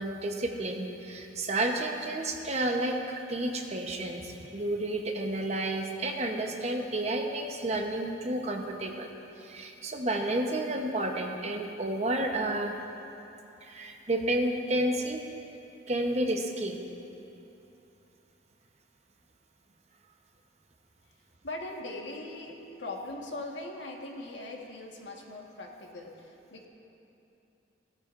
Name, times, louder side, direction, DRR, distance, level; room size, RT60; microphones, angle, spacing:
voice 1, 0.0-9.1 9.4-12.8 13.6-15.2 15.9-16.8, right 1 dB, 35° right, 3 dB, 0.9 m, -31 dB
voice 2, 21.4-26.7, left 2 dB, 75° left, 0 dB, 1.4 m, -40 dB
17.0 x 12.5 x 2.5 m, 2.9 s
head